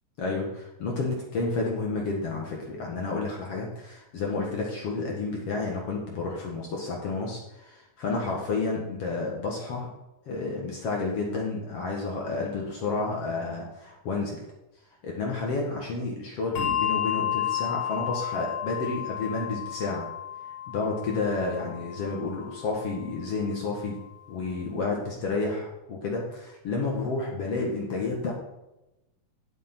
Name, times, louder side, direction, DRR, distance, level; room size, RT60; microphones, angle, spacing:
voice 1, 0.2-9.9 10.3-14.4 15.0-20.1 20.7-24.0 24.3-28.3, left 3 dB, 55° left, -1 dB, 2.3 m, -30 dB
Bell, 16.6-23.4, left 10 dB, 70° left, 2.2 m, -32 dB
11.0 x 7.2 x 4.4 m, 0.95 s
omnidirectional pair, 3.6 m